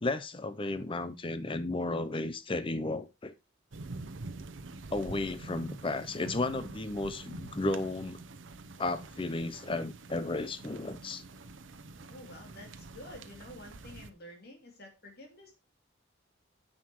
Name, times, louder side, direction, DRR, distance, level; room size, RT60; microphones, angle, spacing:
voice 1, 0.0-3.3 4.9-8.2 8.8-11.2, left 2 dB, 25° left, 0.6 m, -33 dB
sound 1, 3.7-14.1, right 2 dB, 80° right, 0.7 m, -46 dB
voice 2, 11.9-15.5, left 1 dB, 55° left, 2.5 m, -50 dB
9.5 x 6.5 x 3.0 m
head